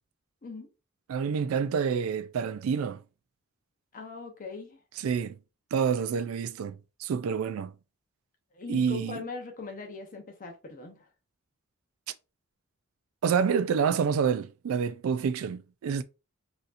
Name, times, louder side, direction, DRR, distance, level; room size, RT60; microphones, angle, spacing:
voice 1, 1.1-3.0 5.0-5.4 5.7-6.8 7.0-7.7 8.7-9.2 13.2-16.0, right 6 dB, 75° right, 0.3 m, -28 dB
voice 2, 3.9-4.8 8.5-11.1, left 4 dB, 40° left, 0.8 m, -40 dB
4.1 x 2.7 x 2.4 m
head